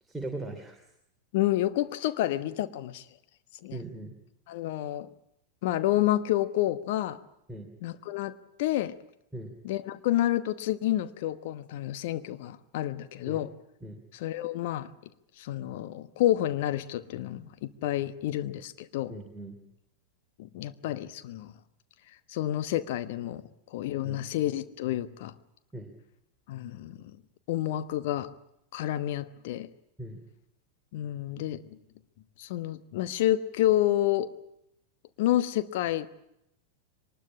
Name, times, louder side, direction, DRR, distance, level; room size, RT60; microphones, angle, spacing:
voice 1, 0.0-0.8 3.7-4.1 7.5-7.7 9.3-9.5 13.2-13.4 13.8-14.0 19.1-19.6 24.0-24.2 25.7-25.9 30.0-30.2, right 2 dB, ahead, 1 dB, 3.1 m, -39 dB
voice 2, 1.3-3.0 3.6-3.8 4.5-5.1 5.6-7.2 7.8-9.0 9.6-13.5 14.1-14.9 15.4-19.1 20.4-21.5 22.3-23.4 23.7-25.3 26.5-27.0 27.5-28.3 28.7-29.7 30.9-31.6 32.4-34.3 35.2-36.1, left 13 dB, 50° left, 11 dB, 1.1 m, -29 dB
23.0 x 20.0 x 8.7 m, 0.80 s
figure-of-eight pair, 90°, 0 cm